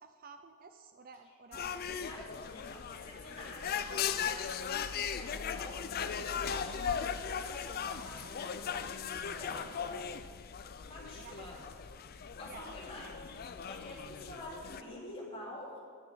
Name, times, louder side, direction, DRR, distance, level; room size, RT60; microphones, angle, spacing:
voice 1, 0.0-1.8 11.2-11.7 12.5-12.8, right 4 dB, 45° right, 8 dB, 0.5 m, -52 dB
sound 1, 1.5-14.8, left 7 dB, 45° left, 0.5 m, -38 dB
voice 2, 1.9-10.0 10.8-11.6 12.3-15.8, left 1 dB, 25° left, -5 dB, 2.9 m, -48 dB
9.5 x 7.9 x 7.1 m, 2.1 s
head